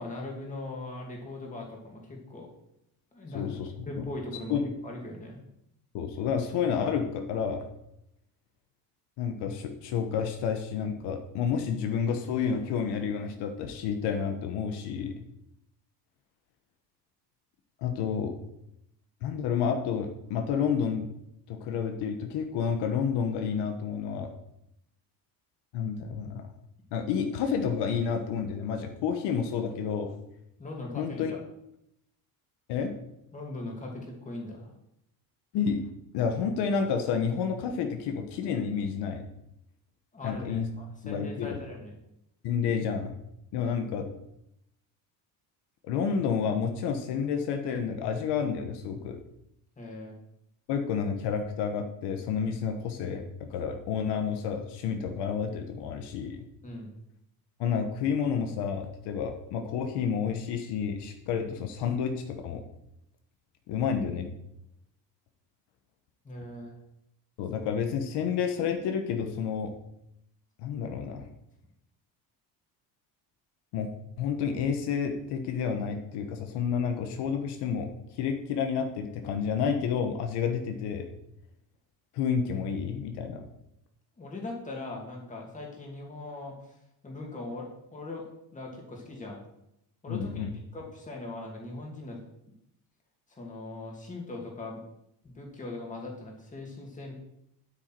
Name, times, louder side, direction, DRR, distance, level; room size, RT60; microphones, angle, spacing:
voice 1, 0.0-2.5 3.1-3.4 3.9-4.5 4.8-5.4 30.6-31.4 33.3-34.7 40.1-42.0 49.8-50.2 56.6-56.9 66.2-66.7 84.2-86.7 87.0-88.3 88.5-89.4 90.0-90.5 90.7-92.2 93.3-94.8 95.2-97.1, left 2 dB, 20° left, 0 dB, 2.3 m, -40 dB
voice 2, 3.3-4.0 4.5-4.6 5.9-7.6 9.2-15.2 17.8-18.3 19.2-21.1 21.5-24.3 25.7-26.4 26.9-30.1 31.0-31.3 32.7-32.9 35.5-35.8 36.1-39.2 40.2-40.7 41.0-41.6 42.4-43.2 43.5-44.1 45.8-49.2 50.7-56.4 57.6-62.6 63.7-64.3 67.4-69.7 70.6-71.3 73.7-73.9 74.2-81.1 82.1-83.4 90.1-90.5, left 7 dB, 75° left, 6 dB, 1.2 m, -30 dB
9.4 x 8.3 x 4.6 m, 0.80 s
cardioid pair, 160°, 41 cm